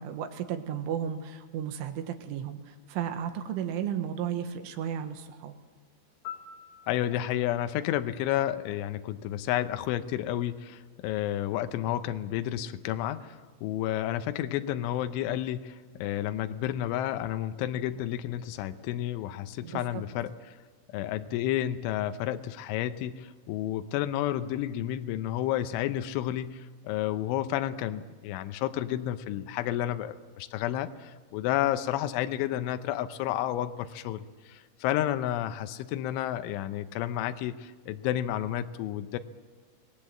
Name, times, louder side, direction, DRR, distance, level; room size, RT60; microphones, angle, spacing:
voice 1, 0.0-5.6 19.6-20.0, right 9 dB, 85° right, 7 dB, 3.8 m, -34 dB
Piano, 6.2-9.2 17.3-17.5, left 9 dB, 60° left, 3.7 m, -48 dB
voice 2, 6.9-20.3 20.9-39.2, left 12 dB, 80° left, 9 dB, 3.3 m, -31 dB
26.5 x 19.0 x 7.7 m, 1.4 s
omnidirectional pair, 5.6 m